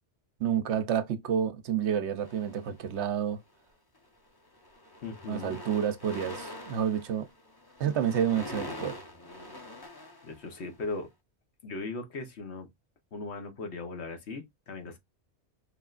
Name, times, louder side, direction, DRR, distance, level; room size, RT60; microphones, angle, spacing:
voice 1, 0.4-3.4 5.3-7.3 7.8-9.0, right 8 dB, 75° right, 1.0 m, -29 dB
sound 1, 2.2-3.2 3.9-4.2 4.4-10.9, left 2 dB, 20° left, 0.8 m, -44 dB
voice 2, 5.0-5.6 10.2-11.1 11.6-12.7 13.1-15.0, left 3 dB, 70° left, 1.4 m, -38 dB
4.7 x 3.3 x 2.4 m
omnidirectional pair, 1.2 m